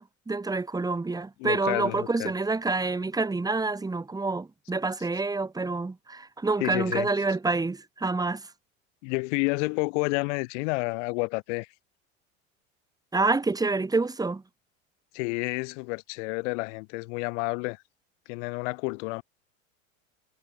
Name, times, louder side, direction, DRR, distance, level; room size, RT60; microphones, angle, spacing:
voice 1, 0.0-8.5 13.1-14.4, right 3 dB, 10° right, 1.8 m, -27 dB
voice 2, 1.4-2.3 6.6-7.1 9.0-11.7 15.1-17.8 18.3-19.2, left 30 dB, 60° left, 3.0 m, -30 dB
hypercardioid pair, 95°, 41 cm